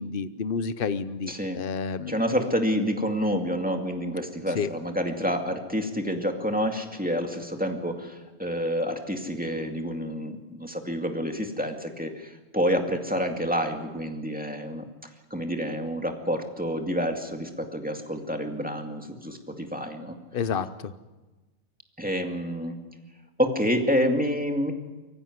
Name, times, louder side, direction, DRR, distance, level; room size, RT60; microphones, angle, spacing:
voice 1, 0.0-2.2 4.5-4.7 20.3-20.9, left 6 dB, 50° left, 13 dB, 1.0 m, -30 dB
voice 2, 1.3-1.6 2.1-20.2 22.0-22.8 23.4-24.7, equal, 5° right, 3 dB, 2.2 m, -28 dB
23.5 x 15.0 x 9.6 m, 1.2 s
omnidirectional pair, 1.3 m